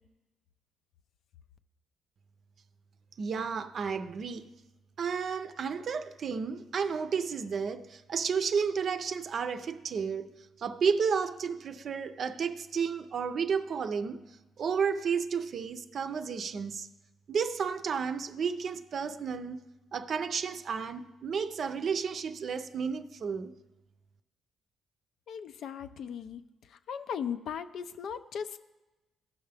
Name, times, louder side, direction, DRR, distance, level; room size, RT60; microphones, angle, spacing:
voice 1, 3.2-4.5 5.0-14.2 14.6-16.9 17.3-19.6 19.9-23.5, right 6 dB, 55° right, 0.5 m, -32 dB
voice 2, 25.3-26.4 26.9-28.6, left 7 dB, 70° left, 0.5 m, -37 dB
15.5 x 5.6 x 3.4 m
cardioid pair, 90°, 0 cm